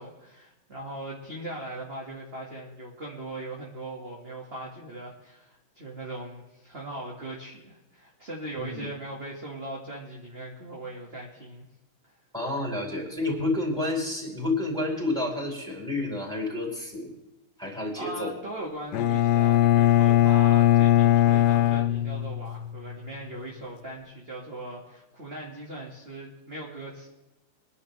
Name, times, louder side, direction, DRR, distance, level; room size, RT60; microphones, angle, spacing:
voice 1, 0.0-11.6 17.6-17.7 18.0-27.1, right 1 dB, 30° right, -3 dB, 2.1 m, -39 dB
voice 2, 12.3-17.1 17.6-18.3, left 2 dB, ahead, -2 dB, 4.2 m, -30 dB
Bowed string instrument, 18.9-22.8, left 12 dB, 80° left, 0.9 m, -20 dB
24.0 x 11.0 x 3.4 m, 0.96 s
omnidirectional pair, 2.4 m